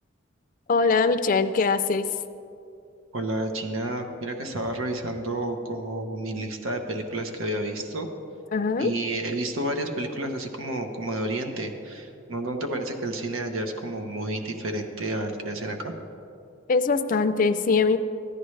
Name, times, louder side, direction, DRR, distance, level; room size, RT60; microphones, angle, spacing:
voice 1, 0.7-2.1 8.5-8.9 16.7-18.0, left 4 dB, 40° left, 9 dB, 0.4 m, -22 dB
voice 2, 3.1-8.1 8.8-15.9, right 1 dB, 90° right, 5 dB, 0.9 m, -30 dB
15.0 x 9.9 x 3.2 m, 2.6 s
head